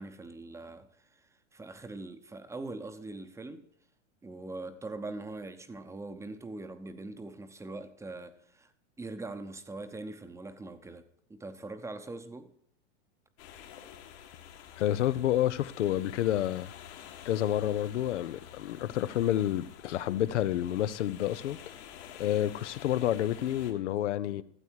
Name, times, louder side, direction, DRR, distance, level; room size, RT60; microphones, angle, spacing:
voice 1, 0.0-3.7 4.2-8.7 9.0-12.5, right 2 dB, 10° right, 0.8 m, -42 dB
sound 1, 13.4-23.7, left 9 dB, 65° left, 2.0 m, -49 dB
voice 2, 14.8-16.7 17.2-21.6 22.2-24.4, left 12 dB, 80° left, 0.7 m, -29 dB
13.0 x 8.0 x 4.6 m
hypercardioid pair, 120°, 35 cm